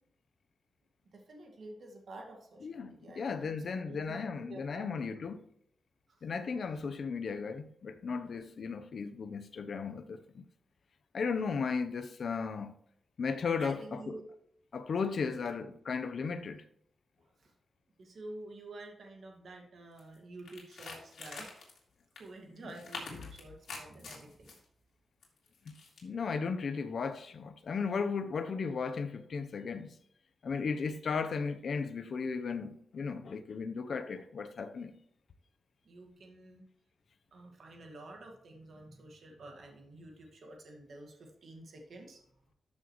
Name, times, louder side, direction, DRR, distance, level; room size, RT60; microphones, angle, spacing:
voice 1, 1.1-3.5 3.9-4.9 6.1-6.2 13.6-14.3 15.0-15.4 17.4-17.5 18.0-21.6 22.2-24.5 35.8-36.6 37.3-42.2, right 2 dB, 60° right, 1.9 m, -49 dB
voice 2, 2.6-5.4 6.2-10.5 11.1-12.8 13.2-14.2 14.7-16.6 23.2-23.3 25.7-30.0 30.4-35.0, left 5 dB, 55° left, 0.8 m, -35 dB
sound 1, 20.0-20.2 20.4-21.8 22.1-22.3 22.7-24.6 25.2-26.0, left 4 dB, 75° left, 3.2 m, -45 dB
13.0 x 6.4 x 3.1 m
wide cardioid pair, 140°, 0 cm